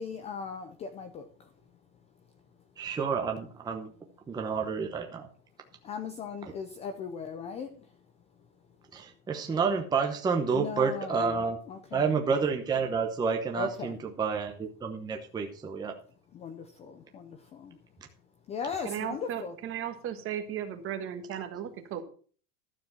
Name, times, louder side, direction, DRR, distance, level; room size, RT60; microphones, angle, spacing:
voice 1, 0.0-1.5 5.8-8.0 10.5-12.1 13.5-14.0 16.3-17.8 18.5-19.5, left 6 dB, 15° left, 8 dB, 0.5 m, -38 dB
voice 2, 2.8-3.9 4.3-5.3 8.9-11.6 11.9-15.9, right 5 dB, 10° right, 3 dB, 0.9 m, -29 dB
voice 3, 18.8-22.0, right 10 dB, 30° right, 8 dB, 1.5 m, -36 dB
12.5 x 7.0 x 5.7 m, 0.44 s
supercardioid pair, 160°, 45 cm